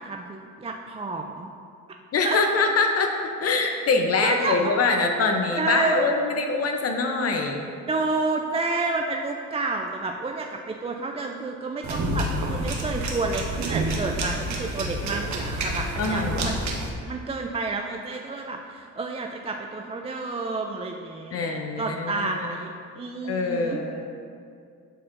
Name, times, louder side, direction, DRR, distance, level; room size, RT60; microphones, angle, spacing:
voice 1, 0.0-1.5 2.2-2.4 4.2-4.7 5.5-6.0 7.9-16.6 17.1-23.8, right 3 dB, 20° right, 2 dB, 0.4 m, -30 dB
voice 2, 2.1-3.1 3.4-7.7 16.0-16.5 21.3-22.5 23.2-24.0, left 4 dB, 50° left, 3 dB, 0.7 m, -24 dB
sound 1, 11.8-16.9, right 1 dB, 65° right, 1.1 m, -28 dB
11.5 x 4.3 x 2.5 m, 2.3 s
cardioid pair, 90°, 30 cm